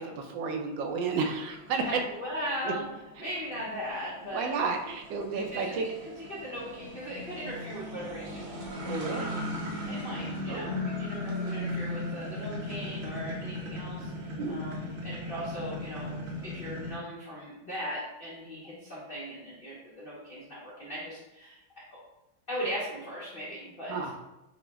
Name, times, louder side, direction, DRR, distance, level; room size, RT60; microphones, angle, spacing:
voice 1, 0.0-2.0 2.6-2.7 4.3-5.9 8.8-9.3 10.5-10.7 14.4-14.6 23.9-24.1, right 4 dB, 75° right, 4 dB, 1.2 m, -31 dB
sound 1, 0.8-16.9, left 1 dB, 60° right, 0.9 m, -37 dB
voice 2, 1.8-2.8 3.2-4.5 5.3-8.6 9.1-9.3 9.8-16.2 16.4-21.6 22.5-24.1, equal, 90° left, -6 dB, 0.4 m, -38 dB
4.9 x 2.1 x 3.4 m, 0.96 s
omnidirectional pair, 2.2 m